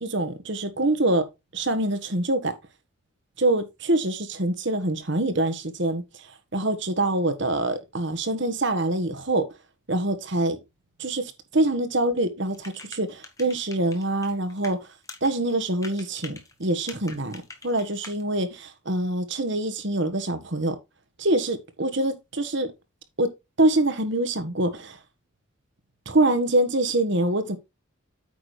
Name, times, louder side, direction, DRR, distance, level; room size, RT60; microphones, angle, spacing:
voice 1, 0.0-1.2 1.5-2.5 3.4-6.0 6.5-9.5 9.9-10.6 11.0-14.8 15.2-20.8 21.2-22.7 23.2-23.3 23.6-25.0 26.0-27.6, right 1 dB, 60° right, 1.4 m, -25 dB
sound 1, 12.5-14.7 15.0-18.2, left 3 dB, 15° left, 1.3 m, -43 dB
8.9 x 6.0 x 3.2 m
head